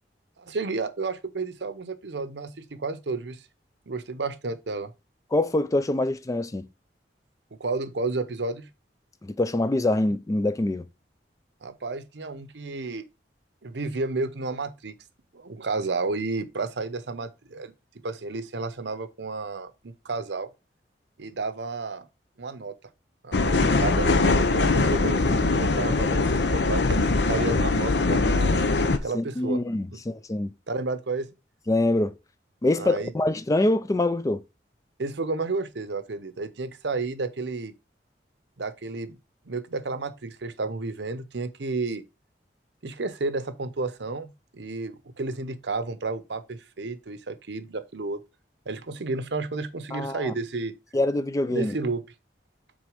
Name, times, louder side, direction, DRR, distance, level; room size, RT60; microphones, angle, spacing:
voice 1, 0.4-3.4 3.9-4.9 7.5-8.7 11.6-13.0 13.6-14.9 15.3-17.7 18.0-20.5 21.2-22.0 22.4-22.7 23.2-27.0 27.3-28.6 29.0-29.6 29.9-30.0 30.7-31.3 32.8-33.1 35.0-37.7 38.6-39.2 39.5-42.0 42.8-48.2 48.7-50.7 51.5-52.0, right 3 dB, 75° right, 0.8 m, -31 dB
voice 2, 5.3-6.7 9.2-10.9 29.1-30.5 31.7-32.1 32.6-34.4 49.9-50.3 50.9-51.8, left 2 dB, 20° left, 0.4 m, -25 dB
sound 1, 23.3-29.0, left 3 dB, 70° left, 0.8 m, -22 dB
6.2 x 4.2 x 4.9 m
head